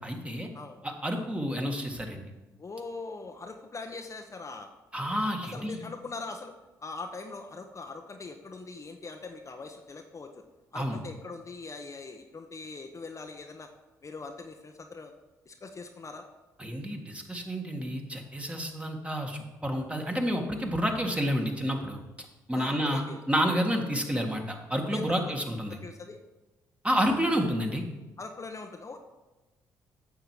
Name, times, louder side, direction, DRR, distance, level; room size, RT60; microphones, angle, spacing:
voice 1, 0.0-0.5 0.8-2.2 4.9-5.8 10.7-11.0 16.6-22.0 22.5-23.0 23.3-25.8 26.8-27.8, equal, 15° right, 3 dB, 1.7 m, -29 dB
voice 2, 2.6-4.7 5.4-6.5 6.8-10.3 10.7-13.7 14.0-15.1 15.5-16.2 22.5-23.2 24.9-25.2 25.7-26.2 28.2-29.0, left 3 dB, 35° left, 4 dB, 0.9 m, -41 dB
9.1 x 6.8 x 4.8 m, 1.1 s
hypercardioid pair, 45°, 9 cm